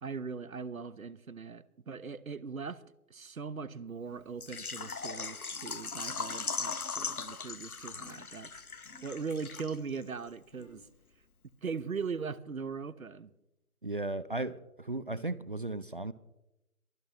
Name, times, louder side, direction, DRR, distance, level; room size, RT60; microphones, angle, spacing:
voice 1, 0.0-2.8 3.1-8.5 9.0-10.8 11.6-13.3, right 5 dB, 70° right, 1.0 m, -40 dB
sound 1, 4.1-4.3 4.8-5.1 5.5-5.8 6.2-6.6 7.9-8.3 8.8-9.2 9.7-10.0 10.5-10.8, left 2 dB, 30° left, 7.6 m, -57 dB
Water / Liquid, 4.4-10.0 10.3-10.4 10.8-10.9, left 4 dB, 75° left, 1.1 m, -39 dB
voice 2, 13.8-16.1, right 2 dB, 40° right, 0.5 m, -36 dB
23.0 x 16.5 x 3.0 m
figure-of-eight pair, 145°, 44 cm